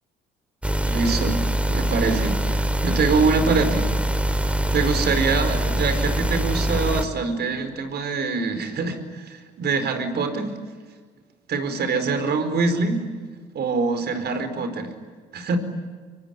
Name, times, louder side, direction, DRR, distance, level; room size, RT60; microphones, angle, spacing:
sound 1, 0.6-7.1, right 1 dB, 5° right, 2.3 m, -23 dB
voice 1, 0.8-1.4 1.7-4.3 4.7-10.5 11.5-13.0 13.5-14.9 15.3-15.6, right 4 dB, 55° right, 9 dB, 4.7 m, -24 dB
25.0 x 24.0 x 9.6 m, 1.5 s
hypercardioid pair, 55°, 20 cm